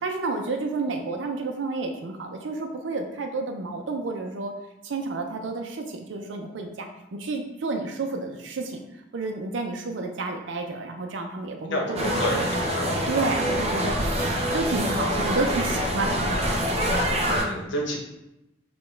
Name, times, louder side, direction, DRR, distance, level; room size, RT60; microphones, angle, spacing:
voice 1, 0.0-4.5 4.8-8.8 9.1-12.8 13.1-16.7, right 3 dB, 80° right, 4 dB, 0.5 m, -30 dB
voice 2, 11.7-12.9 17.2-18.0, equal, 80° left, 0 dB, 0.9 m, -29 dB
sound 1, 12.0-17.4, equal, 35° right, 0.5 m, -25 dB
6.2 x 2.2 x 3.2 m, 0.91 s
head